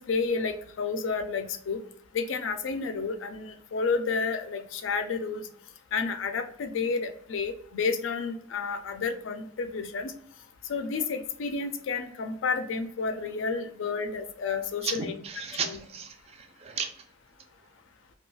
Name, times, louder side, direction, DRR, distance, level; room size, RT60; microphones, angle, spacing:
voice 1, 0.0-1.8 2.1-5.5 5.9-10.1 10.7-15.2 15.6-15.8, left 4 dB, 75° left, 7 dB, 0.4 m, -31 dB
voice 2, 14.8-16.9, right 6 dB, 30° right, 5 dB, 0.4 m, -34 dB
2.3 x 2.2 x 3.0 m, 0.66 s
head